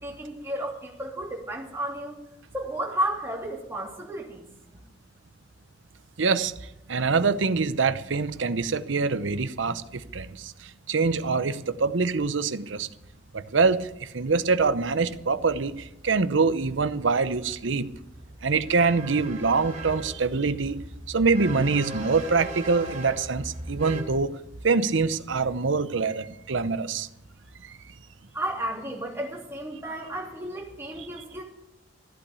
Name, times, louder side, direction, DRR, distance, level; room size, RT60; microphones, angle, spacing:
voice 1, 0.0-2.2 2.5-4.4 28.3-31.4, right 1 dB, 15° right, -2 dB, 3.2 m, -32 dB
voice 2, 6.2-6.5 6.9-10.5 10.9-12.9 13.3-13.8 14.1-15.7 16.0-17.9 18.4-20.8 21.1-24.3 24.6-27.1, right 4 dB, 85° right, 13 dB, 0.8 m, -24 dB
sound 1, 13.0-24.0, right 1 dB, 35° right, 4.1 m, -40 dB
14.5 x 8.8 x 8.3 m, 0.85 s
head